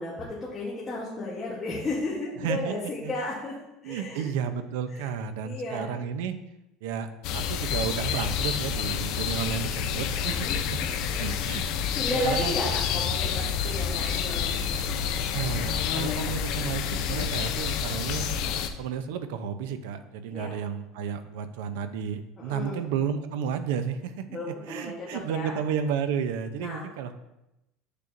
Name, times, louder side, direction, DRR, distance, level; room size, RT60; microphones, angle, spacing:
voice 1, 0.0-3.6 3.8-4.3 4.9-5.1 5.4-6.0 10.2-11.3 11.9-14.7 20.3-20.6 22.4-22.9 24.3-25.5 26.6-26.9, left 2 dB, 15° left, -7 dB, 1.1 m, -34 dB
voice 2, 2.4-2.7 3.0-3.1 3.8-6.4 6.8-10.8 11.1-11.6 12.1-12.6 15.3-18.3 18.8-24.2 24.7-27.1, right 7 dB, 80° right, 10 dB, 0.6 m, -32 dB
sound 1, 7.2-18.7, left 7 dB, 50° left, 0.5 m, -28 dB
7.4 x 6.6 x 2.6 m, 0.93 s
cardioid pair, 170°, 0 cm